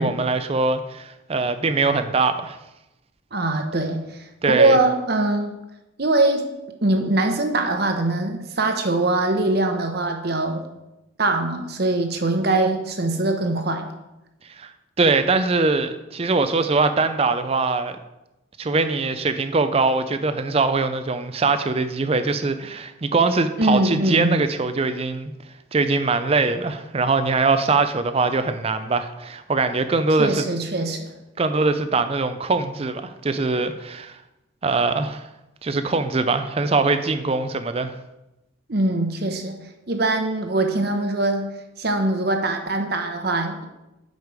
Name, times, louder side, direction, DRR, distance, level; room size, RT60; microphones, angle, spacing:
voice 1, 0.0-2.6 4.4-4.8 14.6-14.7 15.0-18.0 18.6-25.3 25.7-30.4 31.4-34.2 34.6-35.3 35.6-37.9, right 3 dB, 30° right, 10 dB, 0.4 m, -22 dB
voice 2, 3.3-4.0 4.5-5.5 6.0-6.4 6.8-10.6 11.2-13.9 23.6-24.4 30.1-31.1 38.7-43.7, right 2 dB, 50° right, 5 dB, 0.9 m, -22 dB
8.2 x 4.9 x 4.9 m, 0.96 s
head